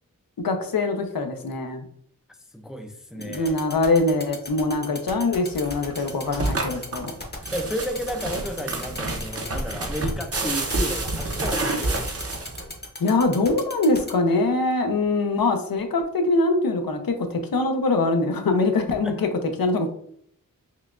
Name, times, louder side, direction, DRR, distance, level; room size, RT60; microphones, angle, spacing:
voice 1, 0.4-1.9 3.3-7.1 13.0-19.3 19.6-19.9, left 3 dB, 85° left, 0.6 m, -23 dB
voice 2, 2.5-3.6 7.5-12.4 19.0-19.3, equal, ahead, 0.4 m, -32 dB
sound 1, 3.2-14.1, left 2 dB, 30° left, 0.7 m, -36 dB
sound 2, 5.5-12.8, right 2 dB, 45° right, 0.6 m, -29 dB
5.6 x 2.2 x 2.4 m
wide cardioid pair, 75°, 34 cm